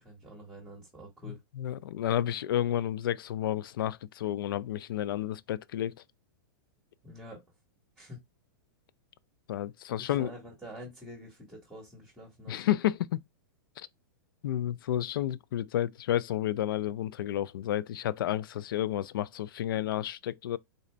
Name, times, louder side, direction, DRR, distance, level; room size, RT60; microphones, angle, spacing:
voice 1, 0.0-1.4 7.0-7.4 8.0-8.2 10.0-12.7, equal, 5° right, 1.2 m, -47 dB
voice 2, 1.6-5.9 9.5-10.3 12.5-13.2 13.8-13.9 14.4-20.6, left 12 dB, 75° left, 0.4 m, -31 dB
4.0 x 2.5 x 3.2 m
supercardioid pair, 155°, 12 cm